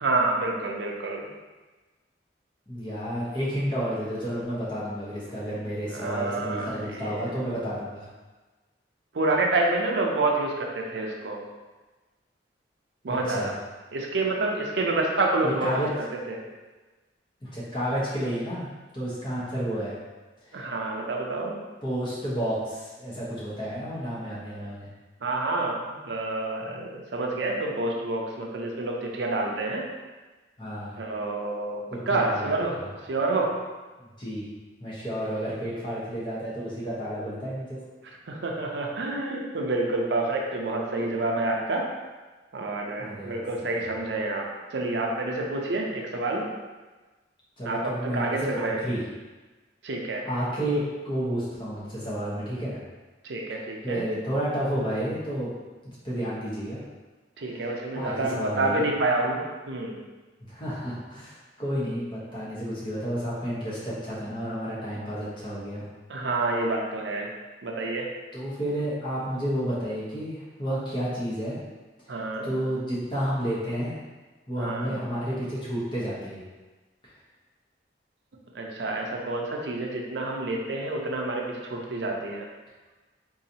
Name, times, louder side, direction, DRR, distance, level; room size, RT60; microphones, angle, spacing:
voice 1, 0.0-1.3 5.9-7.4 9.1-11.4 13.0-13.5 13.9-16.4 20.5-21.6 25.2-25.8 26.0-29.9 31.0-32.8 33.0-33.6 38.3-41.8 42.5-46.5 47.6-48.8 49.8-50.2 53.2-54.0 57.4-60.0 66.1-67.3 67.6-68.1 72.1-72.5 74.6-75.0 78.5-82.4, right 2 dB, 75° right, 0 dB, 0.5 m, -28 dB
voice 2, 2.7-8.1 13.1-13.5 15.4-15.9 17.4-18.7 18.9-20.0 20.4-20.6 21.8-24.9 30.6-31.0 31.9-32.9 34.0-34.5 34.8-37.8 43.0-43.8 47.6-49.0 50.2-52.8 53.8-55.5 56.0-56.8 57.6-57.7 57.9-58.9 60.5-65.8 68.3-71.6 72.4-74.0 74.5-76.4, equal, 25° left, -8 dB, 1.0 m, -31 dB
4.0 x 2.7 x 2.7 m, 1.2 s
head